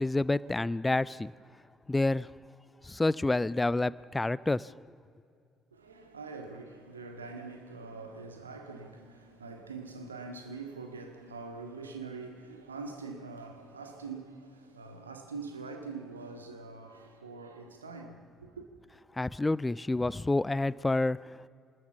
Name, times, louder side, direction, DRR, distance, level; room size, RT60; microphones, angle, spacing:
voice 1, 0.0-1.3 1.9-2.3 2.8-4.7 19.2-21.3, left 2 dB, 15° left, 0.5 m, -28 dB
voice 2, 5.7-18.7, right 4 dB, 80° right, 1.7 m, -44 dB
27.0 x 20.5 x 7.1 m
figure-of-eight pair, 45°, 0 cm